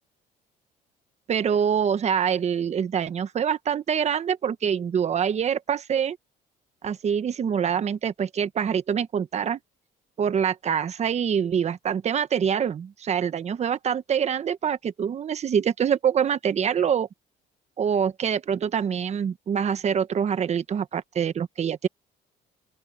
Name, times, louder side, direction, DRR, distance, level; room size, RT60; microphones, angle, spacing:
voice 1, 1.3-6.2 6.8-9.6 10.2-17.1 17.8-21.9, right 8 dB, 40° right, 1.2 m, -25 dB
open air
cardioid pair, 110°, 17 cm